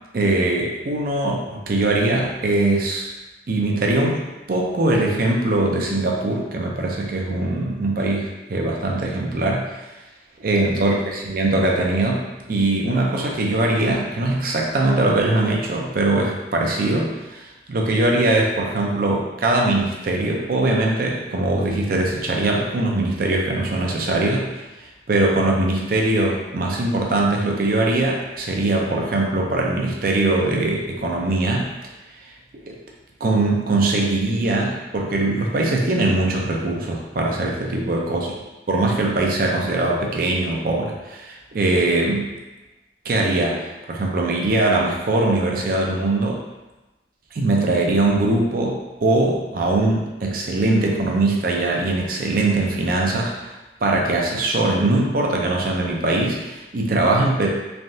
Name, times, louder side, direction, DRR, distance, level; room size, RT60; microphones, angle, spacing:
voice 1, 0.1-3.1 3.5-4.2 4.5-9.7 10.4-24.5 25.1-31.7 32.6-32.7 33.2-38.3 38.7-42.3 43.0-43.6 43.9-46.4 47.3-53.3 53.8-57.5, right 2 dB, 50° right, -1 dB, 0.4 m, -21 dB
3.3 x 2.3 x 2.6 m, 1.1 s
head